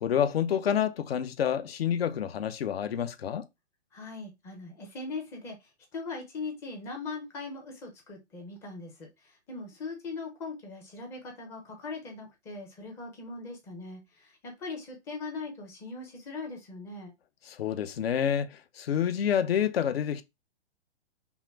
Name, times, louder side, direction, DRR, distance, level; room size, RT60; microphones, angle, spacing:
voice 1, 0.0-3.4 17.5-20.2, left 9 dB, 60° left, 0.7 m, -28 dB
voice 2, 3.9-5.6 5.9-17.1, left 3 dB, 10° left, 0.5 m, -40 dB
5.6 x 2.1 x 4.5 m
hypercardioid pair, 160°, 34 cm